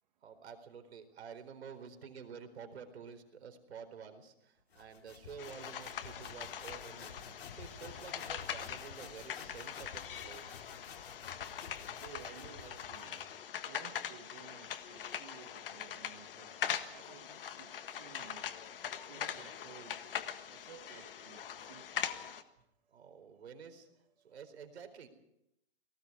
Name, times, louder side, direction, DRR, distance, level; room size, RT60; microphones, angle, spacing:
voice 1, 0.2-10.6 22.9-23.9 24.2-25.1, right 6 dB, 90° right, 7 dB, 4.4 m, -50 dB
sound 1, 4.7-13.3, left 6 dB, 75° left, 4.0 m, -52 dB
sound 2, 5.4-22.4, left 9 dB, 60° left, 1.6 m, -42 dB
voice 2, 12.0-13.2 13.6-16.6 16.9-18.4 19.0-20.0 20.5-22.1, right 9 dB, 45° right, 4 dB, 2.3 m, -55 dB
29.0 x 19.0 x 4.9 m, 0.78 s
hypercardioid pair, 175°, 32 cm